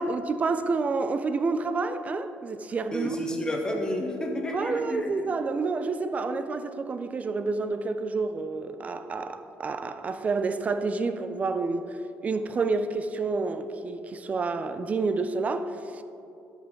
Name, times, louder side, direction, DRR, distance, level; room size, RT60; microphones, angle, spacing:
voice 1, 0.0-3.1 4.5-12.0 12.2-16.0, right 3 dB, 30° right, 0.5 m, -29 dB
voice 2, 2.9-5.3, equal, 15° left, 1.3 m, -30 dB
12.0 x 5.7 x 3.9 m
cardioid pair, 105°, 5 cm